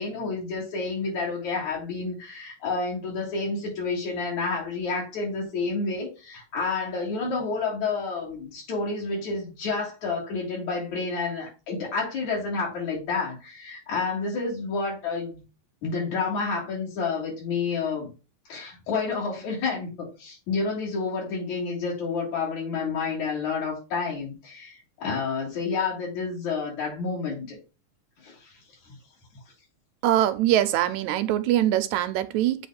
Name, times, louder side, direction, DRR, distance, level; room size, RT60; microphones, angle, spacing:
voice 1, 0.0-15.4 15.8-18.1 18.5-27.6 28.2-28.5, left 4 dB, 70° left, 4.3 m, -29 dB
voice 2, 30.0-32.7, right 12 dB, 80° right, 1.9 m, -23 dB
7.9 x 3.1 x 5.0 m
omnidirectional pair, 3.4 m